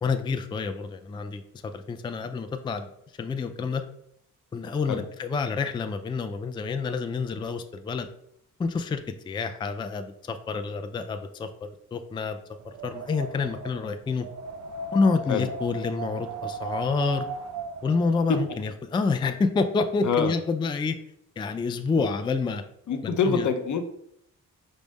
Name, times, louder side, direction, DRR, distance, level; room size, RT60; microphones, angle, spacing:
voice 1, 0.0-1.4 1.7-2.9 3.2-3.8 4.5-8.1 8.6-9.0 9.3-12.4 12.7-14.3 14.9-17.3 17.8-21.0 21.4-22.6 23.0-23.5, left 4 dB, 15° left, 7 dB, 0.3 m, -28 dB
Wind, 12.6-18.6, right 3 dB, 50° right, 0.5 m, -37 dB
voice 2, 22.9-23.8, left 5 dB, 50° left, 7 dB, 0.7 m, -25 dB
5.0 x 2.1 x 3.4 m, 0.73 s
supercardioid pair, 45°, 38 cm